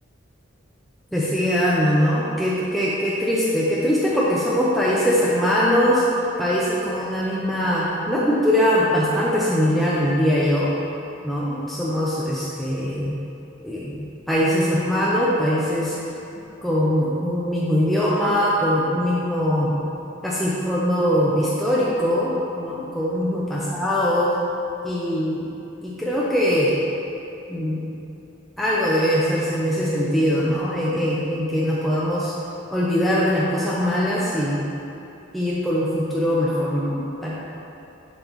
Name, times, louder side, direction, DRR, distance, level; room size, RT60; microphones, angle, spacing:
voice 1, 1.1-6.0 6.4-10.7 11.2-13.1 13.6-15.9 16.6-19.7 20.2-24.3 24.8-25.5 25.8-26.8 27.5-28.0 28.6-32.3 32.7-34.6 35.3-37.3, equal, ahead, -8 dB, 0.5 m, -22 dB
7.5 x 5.4 x 3.0 m, 2.9 s
head